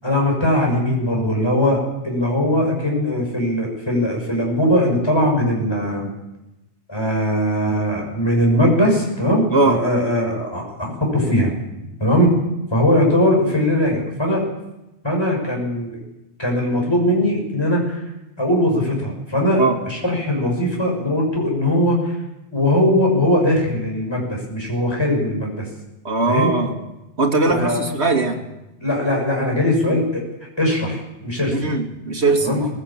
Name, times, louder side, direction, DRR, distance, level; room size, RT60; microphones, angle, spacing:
voice 1, 0.0-6.1 6.9-11.5 12.0-12.3 12.7-14.4 15.0-16.0 16.4-18.0 18.4-22.2 22.5-25.7 26.3-26.5 27.5-27.8 28.8-30.2 30.6-31.7 32.4-32.7, left 1 dB, 20° left, -1 dB, 6.1 m, -20 dB
voice 2, 26.0-26.7 27.2-28.4 31.5-32.7, right 3 dB, 75° right, 2 dB, 2.7 m, -20 dB
19.5 x 16.0 x 8.8 m, 0.95 s
omnidirectional pair, 1.1 m